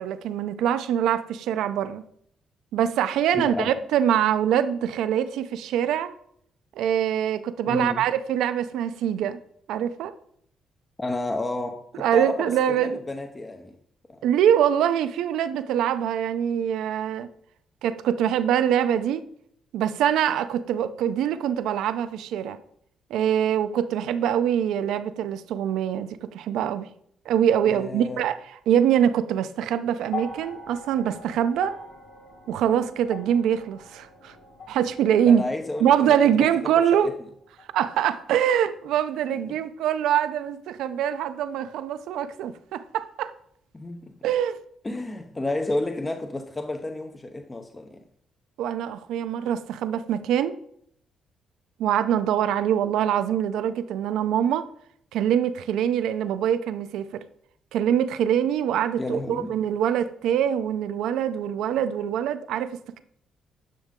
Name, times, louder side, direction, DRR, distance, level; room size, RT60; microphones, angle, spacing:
voice 1, 0.0-2.0 2.7-6.1 6.8-9.4 9.7-10.1 11.9-13.0 14.2-17.3 17.8-19.3 19.7-22.6 23.1-26.9 27.3-31.8 32.5-34.3 34.7-35.4 35.8-37.1 37.7-43.3 44.2-44.6 48.6-50.6 51.8-54.7 55.1-57.2 57.7-63.0, right 9 dB, 85° right, 0.6 m, -24 dB
voice 2, 3.3-3.7 7.7-8.1 11.0-13.7 14.1-14.2 27.7-28.2 35.2-37.1 39.5-39.6 43.7-44.1 44.8-48.0 59.0-59.5, left 2 dB, 20° left, 0.7 m, -31 dB
sound 1, 30.1-38.4 39.5-39.6, left 4 dB, 85° left, 2.9 m, -42 dB
10.5 x 6.3 x 3.7 m
cardioid pair, 90°, 0 cm